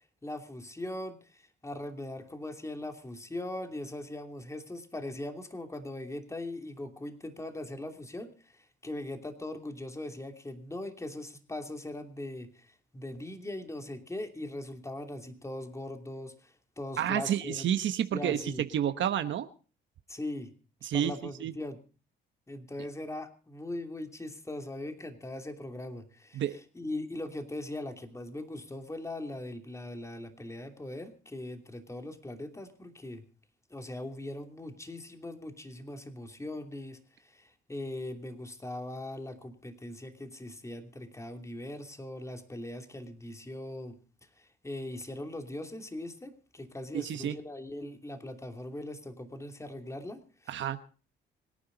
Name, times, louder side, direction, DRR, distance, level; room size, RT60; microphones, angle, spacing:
voice 1, 0.2-17.7 18.1-18.6 20.1-20.5 20.9-21.8 22.5-26.4 26.7-33.2 33.7-43.9 44.4-50.2, left 1 dB, 15° left, 5 dB, 2.8 m, -40 dB
voice 2, 17.0-19.5 20.8-21.1 21.4-21.5 26.3-26.6 46.9-47.4 50.5-50.8, right 10 dB, 70° right, 10 dB, 1.1 m, -30 dB
25.5 x 10.0 x 4.0 m, 0.38 s
cardioid pair, 90°, 20 cm